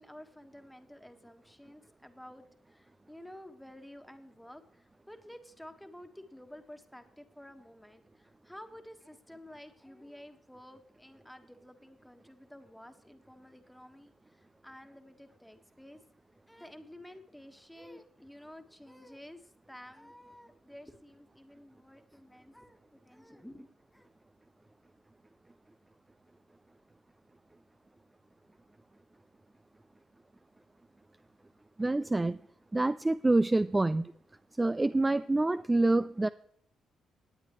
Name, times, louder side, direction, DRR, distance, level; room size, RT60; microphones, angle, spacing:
voice 1, 0.0-16.0 16.5-24.1, left 1 dB, 5° left, 6 dB, 1.5 m, -52 dB
voice 2, 31.8-32.4 32.7-34.1 34.6-36.3, right 2 dB, 20° right, 13 dB, 0.3 m, -26 dB
18.5 x 8.6 x 3.1 m, 0.71 s
supercardioid pair, 65°, 0 cm